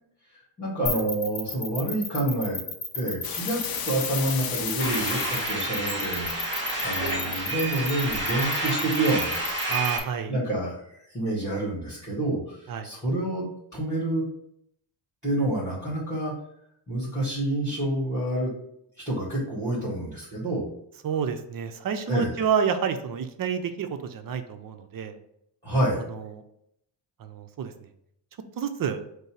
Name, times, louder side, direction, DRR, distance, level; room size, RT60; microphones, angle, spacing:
voice 1, 0.6-2.6 2.9-6.3 6.8-9.4 10.3-13.5 13.7-14.2 15.2-16.3 16.9-18.5 19.0-20.7 22.1-22.5 25.6-26.0, right 1 dB, 5° left, -7 dB, 1.7 m, -28 dB
sound 1, 0.9-10.0, left 4 dB, 30° left, 0.9 m, -33 dB
sound 2, 3.2-5.6, left 8 dB, 50° left, 0.5 m, -33 dB
sound 3, 4.8-10.0, right 1 dB, 25° right, 1.6 m, -29 dB
voice 2, 9.7-10.3 12.7-12.9 21.0-25.2 26.1-26.4 27.2-27.7 28.6-29.0, right 7 dB, 45° right, 8 dB, 0.5 m, -29 dB
5.3 x 2.0 x 4.8 m, 0.75 s
cardioid pair, 120°, 47 cm